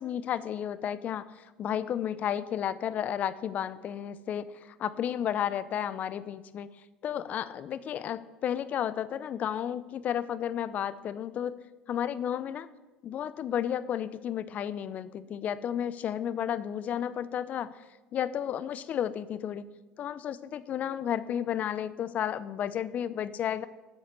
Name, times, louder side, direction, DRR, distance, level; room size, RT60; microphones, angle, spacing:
voice 1, 0.0-6.7 7.0-11.6 11.9-12.7 13.0-17.7 18.1-19.7 20.0-23.7, left 9 dB, 50° left, 16 dB, 0.5 m, -32 dB
8.0 x 7.3 x 6.8 m, 1.1 s
hypercardioid pair, 75°, 3 cm